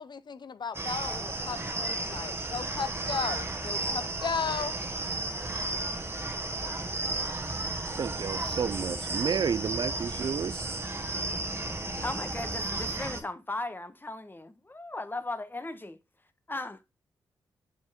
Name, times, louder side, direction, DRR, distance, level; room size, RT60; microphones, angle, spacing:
voice 1, 0.0-4.8, left 5 dB, 55° left, 0.5 m, -35 dB
sound 1, 0.7-13.2, right 2 dB, 25° right, 1.3 m, -33 dB
voice 2, 8.0-10.7, right 6 dB, 50° right, 0.3 m, -31 dB
voice 3, 12.0-16.0 16.5-16.8, left 2 dB, 20° left, 1.1 m, -37 dB
6.8 x 4.5 x 3.6 m
supercardioid pair, 45°, 9 cm